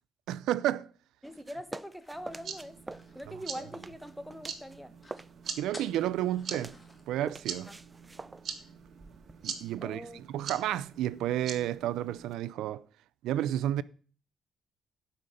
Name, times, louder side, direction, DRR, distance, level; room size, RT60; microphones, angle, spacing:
voice 1, 0.3-0.9 3.3-3.6 5.6-6.8 7.1-7.7 9.4-12.8 13.2-13.8, right 12 dB, 85° right, 0.4 m, -31 dB
voice 2, 1.2-5.0 9.8-10.2, equal, ahead, 1.3 m, -43 dB
sound 1, 1.2-4.8 5.0-9.5, right 2 dB, 20° right, 0.4 m, -46 dB
sound 2, 2.0-4.4 4.7-4.8 5.0-5.3 5.7-7.0, left 1 dB, 20° left, 2.2 m, -54 dB
sound 3, 2.1-12.3, right 6 dB, 60° right, 1.7 m, -44 dB
12.0 x 5.5 x 6.4 m
cardioid pair, 90°, 0 cm